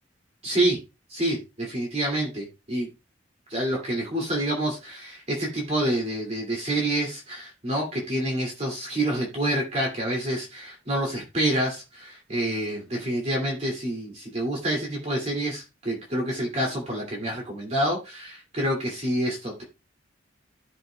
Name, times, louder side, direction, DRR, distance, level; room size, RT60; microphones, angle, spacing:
voice 1, 0.4-0.8 1.1-2.9 3.5-19.6, right 1 dB, 35° right, -2 dB, 2.3 m, -27 dB
15.5 x 6.2 x 2.2 m, 0.26 s
head